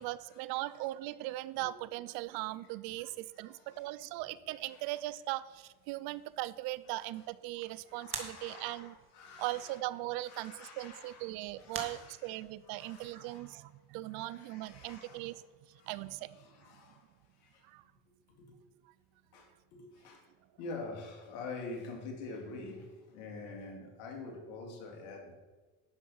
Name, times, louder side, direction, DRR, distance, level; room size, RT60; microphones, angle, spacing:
voice 1, 0.0-8.9 9.4-15.4 15.7-16.4 17.6-17.8, right 17 dB, 60° right, 18 dB, 0.6 m, -39 dB
voice 2, 3.4-3.9 4.1-4.2 4.6-5.2 6.9-7.2 7.9-9.8 10.2-13.7 14.1-15.4 15.7-15.9 16.2-17.7 18.3-18.6 19.3-20.3 20.6-25.3, left 3 dB, 70° left, 2 dB, 2.5 m, -47 dB
sound 1, 5.5-12.7, right 5 dB, 30° right, 1.9 m, -49 dB
11.5 x 6.2 x 5.5 m, 1.3 s
hypercardioid pair, 85°, 43 cm